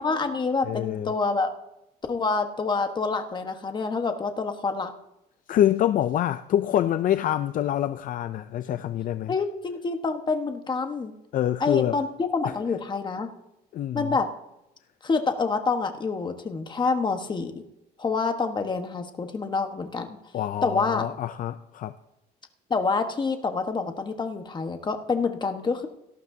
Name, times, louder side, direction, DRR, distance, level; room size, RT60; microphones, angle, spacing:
voice 1, 0.0-1.5 2.1-4.9 9.3-11.1 11.6-13.3 13.9-14.3 15.0-17.6 18.0-20.2 20.6-21.1 22.7-25.9, left 4 dB, 25° left, 1.3 m, -27 dB
voice 2, 0.7-1.1 5.5-9.3 11.3-12.0 12.4-12.5 13.7-14.1 20.3-21.9, left 11 dB, 55° left, 0.5 m, -26 dB
18.0 x 12.5 x 2.8 m
cardioid pair, 110°, 17 cm